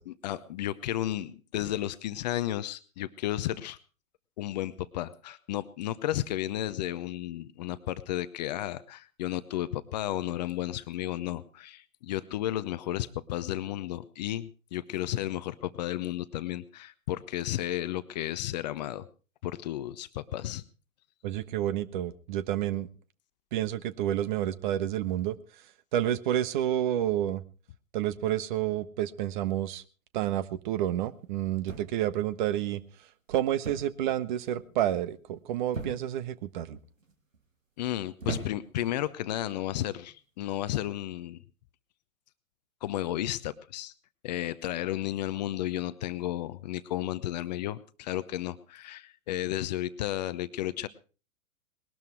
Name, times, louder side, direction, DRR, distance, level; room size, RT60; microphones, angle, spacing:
voice 1, 0.1-3.8 4.4-19.1 19.4-20.6 37.8-41.4 42.8-43.9 44.2-50.9, left 13 dB, 30° left, 14 dB, 0.7 m, -33 dB
voice 2, 21.2-22.9 23.5-25.4 25.9-27.4 27.9-29.8 30.1-32.8 33.3-36.8, right 12 dB, 35° right, 17 dB, 1.0 m, -29 dB
sound 1, 31.7-32.2 33.6-34.0 34.3-34.7 35.7-36.3 37.0-37.4 38.2-38.9 39.8-40.1, right 4 dB, 70° right, 2.8 m, -38 dB
20.0 x 12.5 x 4.6 m, 0.37 s
figure-of-eight pair, 110°, 41 cm